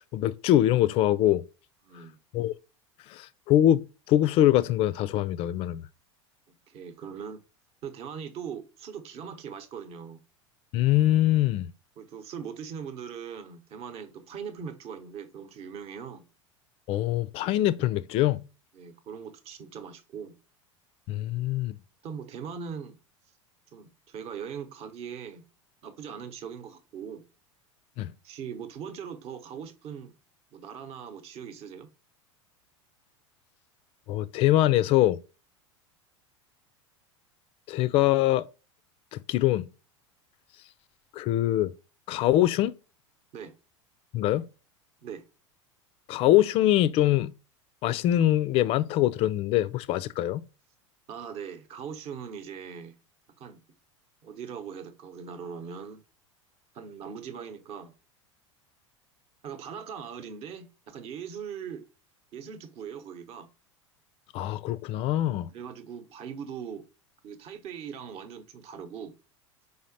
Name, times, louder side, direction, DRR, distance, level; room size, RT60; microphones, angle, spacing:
voice 1, 0.0-1.4 2.3-2.5 3.1-5.8 10.7-11.7 16.9-18.5 21.1-21.8 28.0-28.1 34.1-35.2 37.7-38.5 39.1-39.7 41.2-41.7 42.1-42.7 44.1-44.4 46.1-47.3 47.8-50.4 64.3-65.5, left 13 dB, 35° left, 0.4 m, -23 dB
voice 2, 1.8-2.2 6.7-7.4 7.8-10.2 12.0-16.2 18.7-20.3 22.0-23.0 23.7-25.4 25.8-27.2 28.2-30.1 30.5-31.9 43.3-43.5 45.0-45.2 51.1-52.9 53.4-53.6 54.2-56.0 56.7-57.9 59.4-61.8 62.3-63.5 65.5-66.8 67.2-69.1, right 7 dB, 40° right, 0.9 m, -40 dB
5.0 x 3.9 x 2.6 m
figure-of-eight pair, 80°, 16 cm